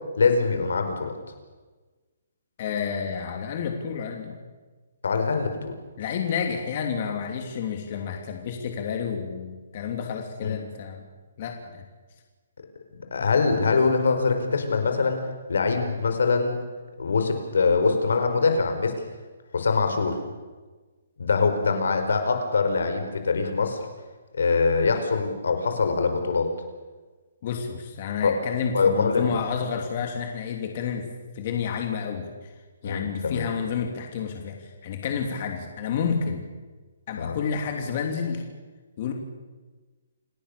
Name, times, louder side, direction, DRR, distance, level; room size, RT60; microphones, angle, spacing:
voice 1, 0.2-1.1 5.0-5.7 10.4-10.5 13.1-15.2 15.5-16.6 17.0-19.0 19.5-20.2 21.2-23.8 24.3-26.5 28.2-28.3 28.7-29.4 32.8-33.4 37.2-37.4, left 4 dB, 80° left, 6 dB, 5.1 m, -23 dB
voice 2, 2.6-4.4 6.0-11.0 11.4-11.8 27.4-31.1 31.3-32.5 32.8-36.4 37.1-38.4 39.0-39.1, left 6 dB, 35° left, 3 dB, 3.0 m, -30 dB
28.5 x 19.0 x 6.9 m, 1.3 s
hypercardioid pair, 165°, 0 cm